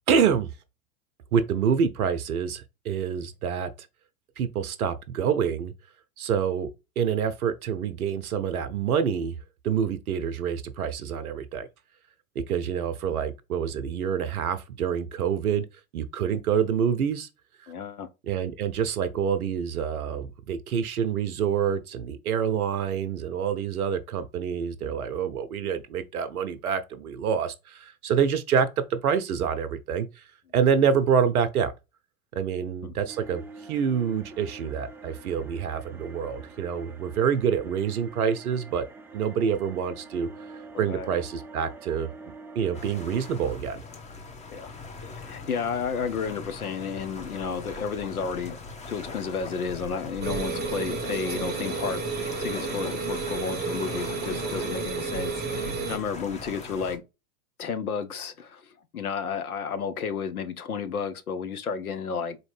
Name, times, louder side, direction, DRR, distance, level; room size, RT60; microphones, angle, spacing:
voice 1, 0.1-0.5 1.3-3.7 4.4-5.7 6.2-6.7 7.0-9.4 9.6-11.7 12.5-15.7 15.9-17.3 18.2-30.2 30.5-31.7 32.4-38.8 39.1-40.3 40.5-42.1 42.6-43.8, right 7 dB, 85° right, 0.6 m, -27 dB
voice 2, 17.7-18.1 32.8-32.9 40.7-41.1 44.5-44.7 45.1-48.6 48.9-52.0 52.4-57.0 57.6-62.4, left 6 dB, 90° left, 0.8 m, -32 dB
sound 1, 33.1-43.5, right 3 dB, 5° right, 0.4 m, -46 dB
sound 2, 42.7-57.0, left 3 dB, 15° left, 0.9 m, -41 dB
sound 3, 50.2-56.0, right 4 dB, 25° right, 0.9 m, -31 dB
4.1 x 2.9 x 3.2 m
hypercardioid pair, 95°, 43 cm